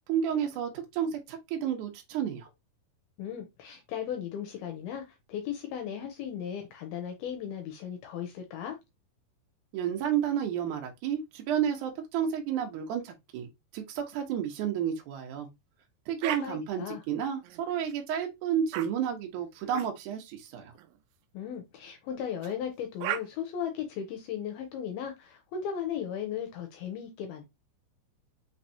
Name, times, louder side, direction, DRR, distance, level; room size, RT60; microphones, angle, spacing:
voice 1, 0.1-2.5 9.7-13.5 13.7-15.5 16.1-20.7, right 9 dB, 65° right, 2.1 m, -31 dB
voice 2, 3.2-8.8 16.4-17.0 21.3-27.5, left 8 dB, 80° left, 2.6 m, -36 dB
sound 1, 16.2-16.4 17.4-17.9 18.7-18.9 19.7-19.9 20.8-21.0 22.4-22.5 23.0-23.2, right 13 dB, 85° right, 2.0 m, -35 dB
6.0 x 3.3 x 2.7 m
omnidirectional pair, 4.7 m